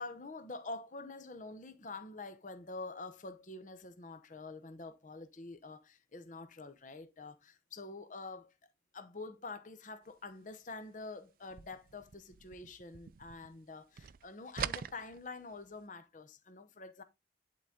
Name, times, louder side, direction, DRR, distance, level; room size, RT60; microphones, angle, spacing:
voice 1, 0.0-8.5 8.9-17.0, left 3 dB, 45° left, 0.7 m, -46 dB
sound 1, 11.4-13.7 13.9-15.8, right 8 dB, 50° right, 0.3 m, -43 dB
11.0 x 3.9 x 3.6 m
head